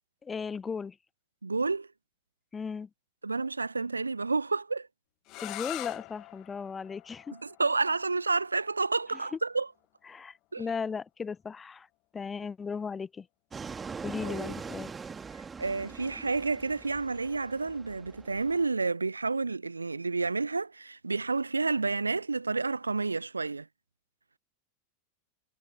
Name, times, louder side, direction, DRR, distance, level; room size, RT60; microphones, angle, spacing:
voice 1, 0.2-1.0 2.5-2.9 5.4-7.3 10.1-11.9 12.1-13.3 14.0-14.9, left 5 dB, 15° left, 0.8 m, -36 dB
voice 2, 1.4-1.9 3.2-4.9 7.4-9.7 10.5-10.7 14.2-14.5 15.6-23.7, right 3 dB, 80° right, 0.7 m, -30 dB
sound 1, 5.2-11.0, left 21 dB, 40° left, 1.0 m, -45 dB
Fixed-wing aircraft airplane, 13.5-18.7, right 5 dB, 15° right, 2.6 m, -42 dB
figure-of-eight pair, 90°, 0 cm